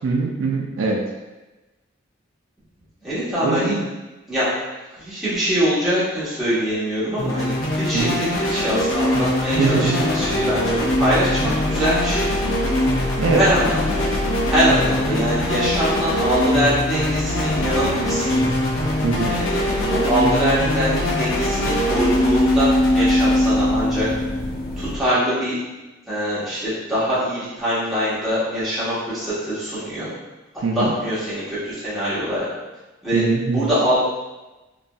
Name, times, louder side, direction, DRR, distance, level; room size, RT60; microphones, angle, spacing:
voice 1, 0.0-1.0 3.4-3.9 7.9-8.2 9.5-10.0 13.2-13.4 19.0-19.3 30.6-30.9 33.1-33.7, right 4 dB, 75° right, 0 dB, 0.3 m, -22 dB
voice 2, 3.0-3.8 4.3-4.4 4.9-12.3 13.3-14.1 14.5-18.4 19.2-24.1 24.8-25.6 26.1-30.1 30.7-32.5 33.0-33.2 33.5-34.0, equal, ahead, -13 dB, 1.0 m, -23 dB
sound 1, 7.2-24.9, left 1 dB, 80° left, 0.7 m, -22 dB
sound 2, 10.2-25.0, left 2 dB, 45° left, 0.3 m, -30 dB
2.9 x 2.5 x 2.2 m, 1.1 s
head